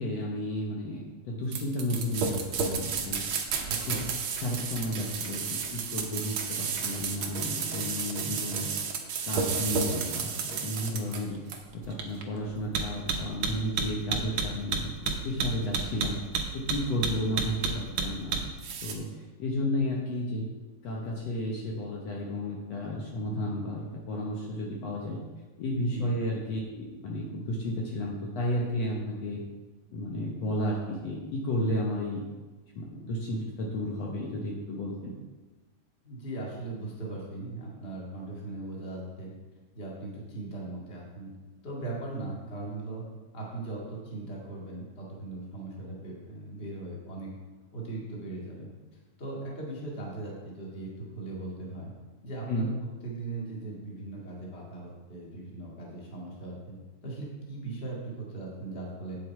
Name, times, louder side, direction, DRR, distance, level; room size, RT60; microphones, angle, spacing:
voice 1, 0.0-3.2 3.9-4.0 4.4-8.7 9.2-11.4 11.7-16.2 16.5-18.5 18.8-20.5 20.8-25.2 25.6-29.4 29.9-32.2 32.8-35.1 52.5-52.7, left 1 dB, 65° left, -2 dB, 2.1 m, -32 dB
sound 1, 1.5-18.9, right 5 dB, 65° right, 1.2 m, -31 dB
voice 2, 3.7-4.0 25.9-26.1 36.0-39.3 39.7-41.3 41.6-43.0 43.3-47.4 47.7-48.7 49.2-51.9 52.2-52.7 53.0-56.8 57.0-59.2, right 2 dB, 25° left, -4 dB, 2.1 m, -39 dB
9.1 x 7.8 x 4.6 m, 1.2 s
omnidirectional pair, 3.4 m